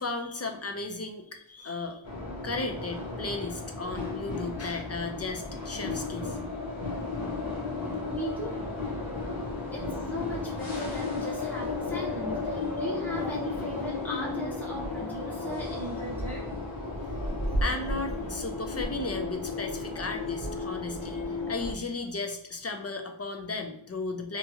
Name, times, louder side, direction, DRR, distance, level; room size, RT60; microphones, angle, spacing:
voice 1, 0.0-2.0 2.4-6.4 17.6-24.4, left 3 dB, 30° left, 4 dB, 0.5 m, -35 dB
sound 1, 2.0-21.7, left 2 dB, 70° left, 1.0 m, -34 dB
voice 2, 8.1-8.7 9.1-16.5, left 1 dB, 5° left, -6 dB, 1.1 m, -38 dB
2.9 x 2.4 x 2.8 m, 0.70 s
wide cardioid pair, 40°, 48 cm